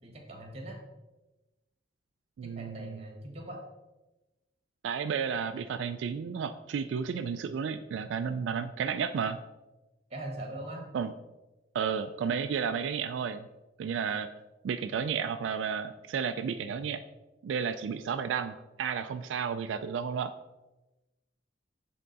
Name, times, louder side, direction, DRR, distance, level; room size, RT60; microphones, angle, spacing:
voice 1, 0.0-0.8 2.4-3.6 10.1-10.8 16.5-16.7, right 1 dB, 35° right, 0 dB, 1.5 m, -41 dB
voice 2, 2.4-3.0 4.8-9.4 10.9-11.1 11.7-13.4 13.8-14.3 14.6-17.0 17.4-20.3, right 6 dB, 85° right, 9 dB, 0.3 m, -32 dB
7.6 x 3.7 x 4.0 m, 1.1 s
head